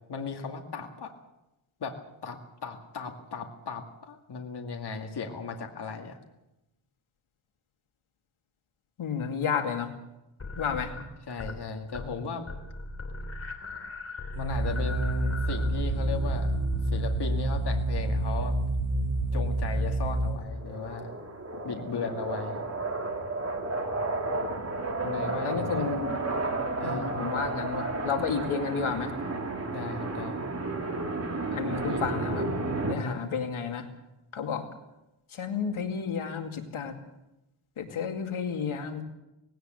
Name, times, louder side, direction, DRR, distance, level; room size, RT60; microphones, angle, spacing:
voice 1, 0.1-1.1 1.8-6.2 11.3-12.4 14.4-16.5 16.9-18.6 19.3-21.1 21.6-22.6 25.0-25.8 26.7-27.1 29.7-30.4 31.8-32.1 32.9-33.2, left 5 dB, 55° left, 3 dB, 2.2 m, -36 dB
voice 2, 9.0-9.9 10.6-10.9 21.7-22.0 25.4-26.2 26.8-29.1 31.5-32.6 32.8-33.9 34.3-34.6 35.3-36.9 37.8-39.0, left 6 dB, 80° left, 4 dB, 2.5 m, -31 dB
sound 1, 10.4-11.6 11.9-12.2 12.5-17.2, left 2 dB, 30° left, 3.1 m, -40 dB
sound 2, 14.3-20.3, right 1 dB, 90° right, 6.0 m, -28 dB
sound 3, 20.4-33.0, right 2 dB, 30° right, 2.5 m, -32 dB
19.0 x 18.0 x 7.7 m, 0.93 s
wide cardioid pair, 135°, 48 cm